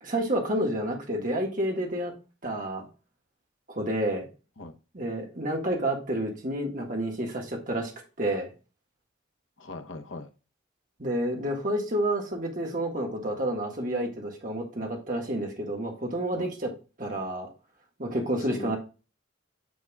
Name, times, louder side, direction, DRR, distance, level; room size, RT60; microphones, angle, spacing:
voice 1, 0.0-2.1 2.4-2.9 3.7-4.3 4.9-7.9 8.2-8.5 11.0-16.7 17.0-17.5 18.0-18.8, right 1 dB, 40° right, 1 dB, 1.7 m, -29 dB
voice 2, 9.6-10.3 16.3-16.5 18.4-18.8, left 2 dB, 80° left, 6 dB, 1.0 m, -40 dB
9.3 x 5.9 x 2.3 m, 0.32 s
head